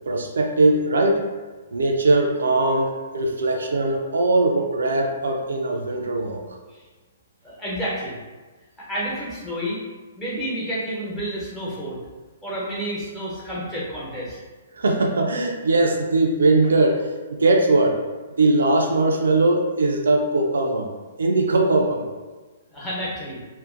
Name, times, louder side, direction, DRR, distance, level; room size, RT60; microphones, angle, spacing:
voice 1, 0.1-1.2 1.7-6.4 14.8-18.0 18.4-20.9 21.2-22.1, right 2 dB, 70° right, 1 dB, 0.3 m, -20 dB
voice 2, 7.4-8.1 8.9-9.8 10.2-12.0 12.4-14.4 22.7-23.4, equal, 15° left, -8 dB, 1.0 m, -30 dB
2.5 x 2.1 x 2.4 m, 1.3 s
figure-of-eight pair, 120°, 0 cm